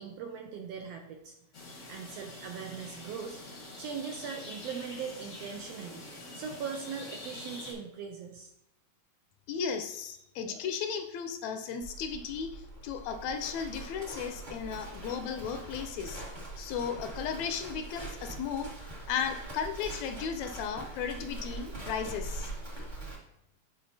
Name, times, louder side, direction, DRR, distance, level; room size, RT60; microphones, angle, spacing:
voice 1, 0.0-1.3 1.9-3.4 3.8-6.1 6.3-8.5, right 6 dB, 75° right, 3 dB, 1.5 m, -40 dB
sound 1, 1.5-7.7, left 2 dB, 55° left, 0.8 m, -46 dB
voice 2, 9.5-16.2 16.6-18.7 19.1-22.5, left 7 dB, 80° left, 7 dB, 1.7 m, -35 dB
Livestock farm animals working animals, 11.8-23.2, right 2 dB, 45° right, 0.6 m, -43 dB
9.3 x 4.2 x 2.7 m, 0.81 s
omnidirectional pair, 3.4 m